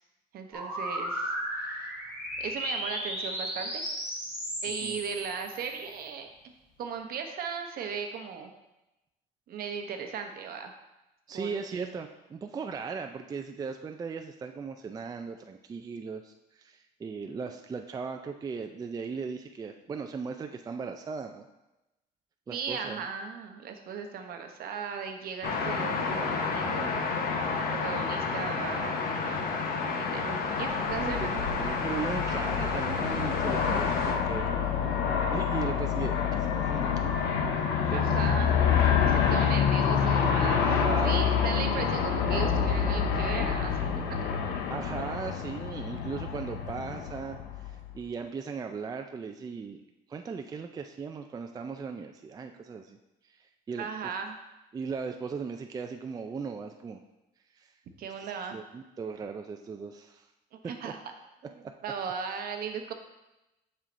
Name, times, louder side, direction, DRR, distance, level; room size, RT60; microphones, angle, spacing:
voice 1, 0.3-1.9 2.4-3.8 4.6-6.5 6.8-8.5 9.5-10.7 11.3-12.0 22.5-27.1 27.7-28.9 29.8-31.3 37.9-38.6 39.0-43.7 44.1-44.2 53.8-54.4 58.0-58.6 60.5-61.0 61.4-61.5 61.8-62.9, right 6 dB, 65° right, 5 dB, 0.8 m, -37 dB
sound 1, 0.5-6.0, equal, 5° right, 2.0 m, -35 dB
voice 2, 11.3-21.5 22.5-23.0 31.0-37.1 37.5-38.2 40.2-40.3 40.7-41.2 44.7-47.4 47.9-49.8 50.1-53.0 53.7-54.1 54.7-57.0 57.6-57.7 58.5-60.2 60.6-60.9, right 5 dB, 20° right, 5 dB, 0.4 m, -38 dB
sound 2, 25.4-34.1, left 4 dB, 60° left, 1.0 m, -30 dB
Aircraft, 30.7-47.9, left 7 dB, 85° left, 0.7 m, -27 dB
7.3 x 5.6 x 2.6 m, 0.97 s
cardioid pair, 110°, 17 cm